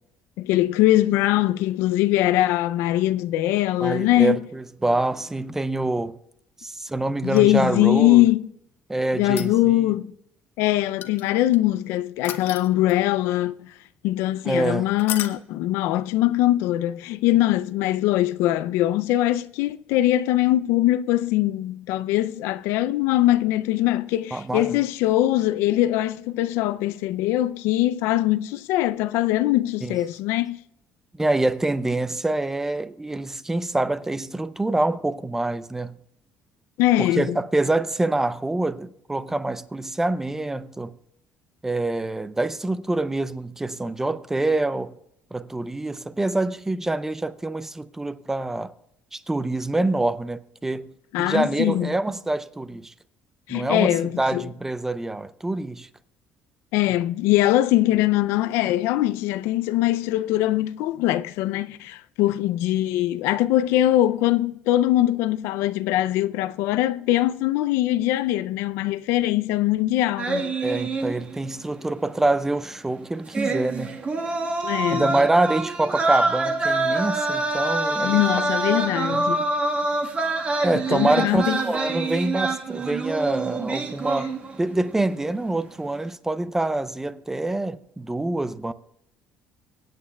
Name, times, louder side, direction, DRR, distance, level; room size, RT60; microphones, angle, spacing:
voice 1, 0.4-4.4 7.2-8.5 9.1-10.1 10.6-13.7 14.0-30.6 36.8-37.4 51.1-51.9 53.5-54.4 56.7-70.5 74.6-75.1 78.0-79.4 80.9-81.6, left 15 dB, 90° left, 0.4 m, -22 dB
voice 2, 3.8-6.2 6.6-8.2 8.9-9.9 14.4-14.9 24.3-24.8 29.8-30.0 31.1-36.0 37.0-40.9 41.6-44.9 45.3-48.7 49.1-50.9 51.2-52.9 53.5-55.9 70.6-74.0 74.9-78.2 79.1-79.2 80.6-88.7, right 2 dB, 10° right, 0.5 m, -26 dB
sound 1, 7.3-8.0 9.2-9.9 11.0-11.6 12.2-13.2 15.0-15.4 17.7-17.8, left 10 dB, 60° left, 0.9 m, -34 dB
sound 2, 70.2-71.6 71.9-72.0 73.3-84.7 85.0-85.3, right 2 dB, 30° right, 1.4 m, -26 dB
24.5 x 8.7 x 2.3 m
cardioid pair, 135°, 4 cm